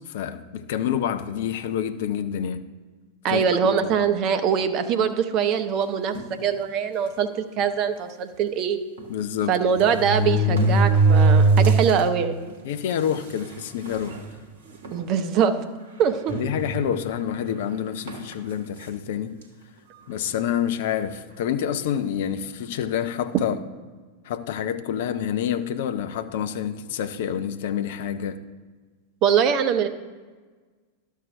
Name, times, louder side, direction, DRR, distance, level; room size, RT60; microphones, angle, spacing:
voice 1, 0.0-2.7 3.3-3.5 3.8-4.1 9.1-9.6 12.6-14.2 16.3-19.4 20.1-23.6 24.2-28.4, left 9 dB, 55° left, 0.4 m, -28 dB
voice 2, 3.2-6.2 6.4-7.3 7.6-8.8 9.5-12.4 14.9-15.6 16.0-16.3 29.2-29.9, right 7 dB, 40° right, 0.7 m, -22 dB
sound 1, 6.1-6.4 7.2-7.3 7.6-7.7 9.0-9.1 9.8-12.0 12.5-12.6 13.4-13.5 13.9-14.2 14.8-15.0 16.3-17.1 18.1-18.3, right 2 dB, 60° right, 1.0 m, -20 dB
12.5 x 6.3 x 2.7 m
figure-of-eight pair, 90°, 0 cm